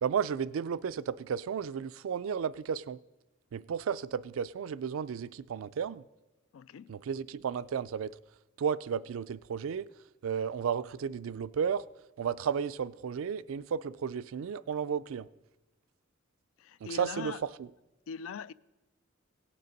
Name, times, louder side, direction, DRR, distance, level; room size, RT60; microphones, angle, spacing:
voice 1, 0.0-3.0 3.5-6.0 6.9-8.1 8.6-9.8 10.2-11.9 12.2-15.3 16.9-17.3 17.6-17.7, right 7 dB, 85° right, 0.4 m, -33 dB
voice 2, 6.5-7.0 16.6-17.4 18.1-18.5, left 6 dB, 80° left, 0.3 m, -41 dB
17.5 x 6.8 x 5.2 m
head